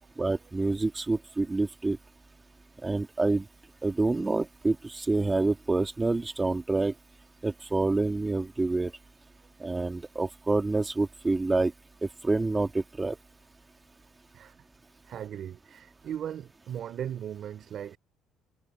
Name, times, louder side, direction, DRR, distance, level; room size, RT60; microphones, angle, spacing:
voice 1, 0.2-2.0 2.8-3.5 3.8-6.9 7.4-8.9 9.6-11.7 12.0-13.2, right 3 dB, 15° right, 2.9 m, -27 dB
voice 2, 14.3-14.7 15.0-18.0, right 9 dB, 50° right, 4.2 m, -38 dB
cardioid pair, 120°, 0 cm